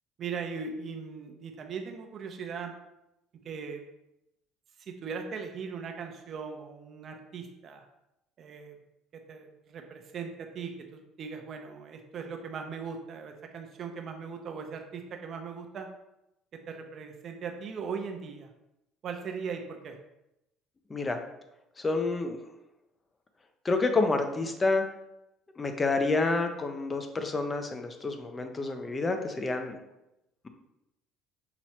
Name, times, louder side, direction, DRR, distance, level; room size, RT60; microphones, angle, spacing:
voice 1, 0.2-2.7 3.4-3.8 4.8-7.8 8.4-8.8 9.1-15.9 16.5-18.5 19.0-20.0, right 5 dB, 50° right, 4 dB, 0.7 m, -39 dB
voice 2, 21.8-22.4 23.6-24.8 25.6-29.8, left 3 dB, 25° left, 6 dB, 0.7 m, -28 dB
5.9 x 3.0 x 2.9 m, 0.88 s
supercardioid pair, 80°, 0 cm